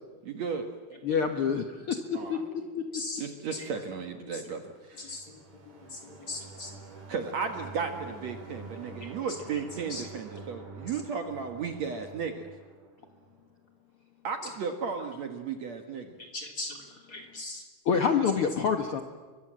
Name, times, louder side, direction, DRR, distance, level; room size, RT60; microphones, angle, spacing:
voice 1, 0.2-0.7 2.1-2.4 3.2-5.2 7.1-12.5 14.2-16.2, right 5 dB, 55° right, 5 dB, 2.2 m, -35 dB
voice 2, 1.0-2.4 2.7-3.0 17.8-19.0, left 6 dB, 75° left, 6 dB, 1.3 m, -27 dB
sound 1, 4.7-13.4, right 3 dB, 75° right, 6.9 m, -47 dB
voice 3, 5.9-6.7 9.0-9.1 9.9-10.0 16.3-16.7 17.1-17.6, left 2 dB, 25° left, 2 dB, 3.7 m, -38 dB
30.0 x 23.5 x 7.6 m, 1.4 s
omnidirectional pair, 4.5 m